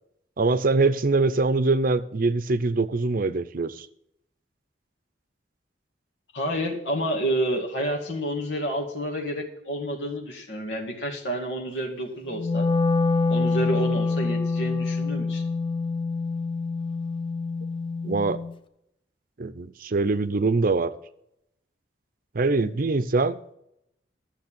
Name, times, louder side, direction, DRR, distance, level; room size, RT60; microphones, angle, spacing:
voice 1, 0.4-3.9 18.0-18.4 19.4-20.9 22.3-23.4, right 3 dB, 50° right, 15 dB, 0.6 m, -23 dB
voice 2, 6.3-12.7 13.3-15.4, right 1 dB, 90° left, 0 dB, 2.2 m, -29 dB
Wind instrument woodwind instrument, 12.3-18.5, left 4 dB, 30° left, 0.7 m, -26 dB
12.0 x 7.1 x 7.3 m, 0.77 s
head